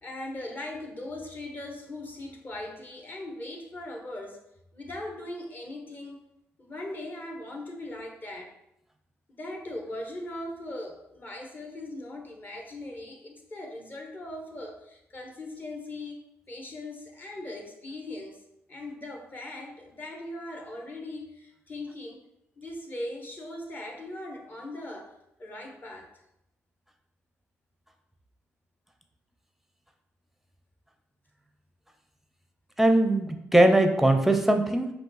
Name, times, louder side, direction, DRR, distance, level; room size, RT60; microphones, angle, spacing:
voice 1, 0.0-4.4 4.7-6.2 6.6-8.5 9.3-16.2 16.5-18.4 18.7-22.2 22.6-25.1 25.4-26.1, left 1 dB, 35° left, 1 dB, 1.1 m, -39 dB
voice 2, 32.8-34.9, right 1 dB, 5° right, 6 dB, 0.6 m, -21 dB
5.2 x 2.4 x 4.1 m, 0.81 s
cardioid pair, 80°, 5 cm